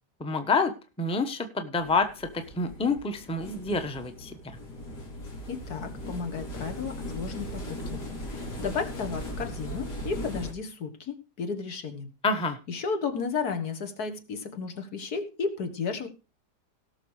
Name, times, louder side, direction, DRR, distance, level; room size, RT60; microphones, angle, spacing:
voice 1, 0.2-0.7 1.0-2.3 2.6-4.3 12.2-12.6, left 3 dB, 5° left, 7 dB, 0.9 m, -27 dB
sound 1, 1.8-10.5, equal, 85° left, 3.5 m, -38 dB
voice 2, 5.5-12.1 12.7-16.1, left 5 dB, 70° left, 7 dB, 2.0 m, -33 dB
17.5 x 6.4 x 4.9 m, 0.32 s
omnidirectional pair, 1.8 m